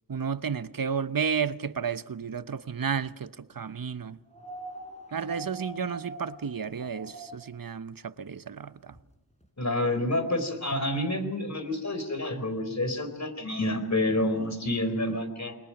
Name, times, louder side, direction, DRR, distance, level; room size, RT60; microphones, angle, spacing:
voice 1, 0.1-4.2 5.1-9.0, right 6 dB, 60° right, 0.9 m, -32 dB
sound 1, 4.3-7.5 9.0-9.1, right 2 dB, 15° left, 5.5 m, -43 dB
voice 2, 9.6-15.6, left 1 dB, 45° left, 4.4 m, -28 dB
29.0 x 22.0 x 6.0 m
wide cardioid pair, 50°, 38 cm